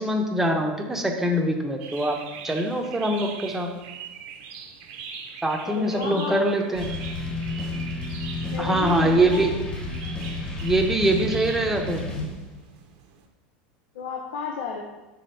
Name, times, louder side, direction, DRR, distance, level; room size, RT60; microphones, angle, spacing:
voice 1, 0.0-2.2 2.4-3.7 5.4-6.9 8.6-9.5 10.6-12.0, right 1 dB, 5° right, 2 dB, 0.8 m, -23 dB
sound 1, 1.8-13.3, right 6 dB, 65° right, 0.8 m, -42 dB
voice 2, 5.6-6.5 8.5-9.6 13.9-14.8, left 5 dB, 75° left, 1 dB, 0.7 m, -33 dB
sound 2, 6.7-12.7, left 2 dB, 25° left, 1.5 m, -31 dB
5.1 x 3.5 x 5.7 m, 1.1 s
supercardioid pair, 120°, 5 cm